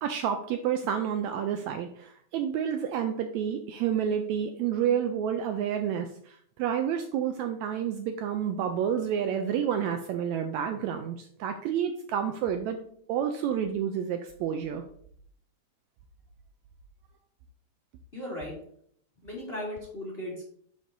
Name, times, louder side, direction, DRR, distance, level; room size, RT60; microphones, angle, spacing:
voice 1, 0.0-12.8 13.1-14.8, right 8 dB, 80° right, 6 dB, 1.7 m, -29 dB
voice 2, 18.1-18.5 19.2-20.4, left 1 dB, 25° left, -4 dB, 1.5 m, -37 dB
11.5 x 5.0 x 2.7 m, 0.64 s
omnidirectional pair, 3.6 m